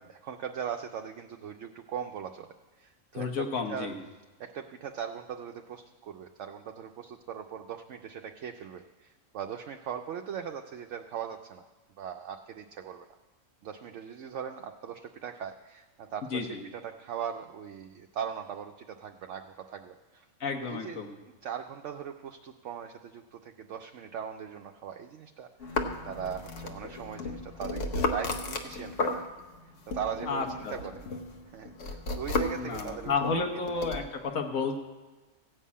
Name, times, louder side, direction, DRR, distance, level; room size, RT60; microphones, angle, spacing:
voice 1, 0.0-2.5 2.8-3.9 4.4-11.6 12.0-13.1 13.6-20.3 20.6-21.0 21.2-29.3 29.9-30.9 31.5-33.7, right 8 dB, 70° right, 4 dB, 0.9 m, -40 dB
voice 2, 3.1-4.0 16.3-16.6 20.4-21.1 30.3-30.7 32.6-34.8, left 4 dB, 85° left, 3 dB, 1.6 m, -31 dB
sound 1, 25.6-29.6 29.9-34.0, left 3 dB, 65° left, 1.3 m, -34 dB
15.0 x 5.5 x 8.4 m, 1.2 s
omnidirectional pair, 1.4 m